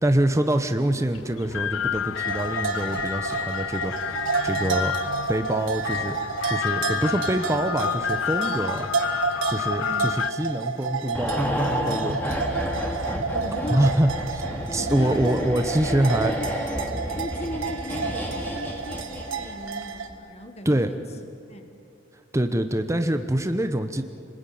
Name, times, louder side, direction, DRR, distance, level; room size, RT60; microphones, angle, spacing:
voice 1, 0.0-5.0 5.3-6.2 6.5-8.9 9.5-12.2 12.9-13.0 13.7-14.4 14.7-16.3 20.6-20.9 22.3-24.0, right 1 dB, 15° right, 7 dB, 0.9 m, -25 dB
sound 1, 1.1-10.3, left 8 dB, 75° left, 0.5 m, -30 dB
sound 2, 2.1-20.1, right 5 dB, 80° right, 1.9 m, -31 dB
voice 2, 9.7-10.2 13.3-14.0 14.7-21.0 21.5-21.7, left 1 dB, 35° left, 6 dB, 1.4 m, -37 dB
sound 3, 11.1-19.7 20.0-20.1, equal, 10° left, 2.7 m, -30 dB
28.5 x 20.5 x 9.4 m, 2.6 s
head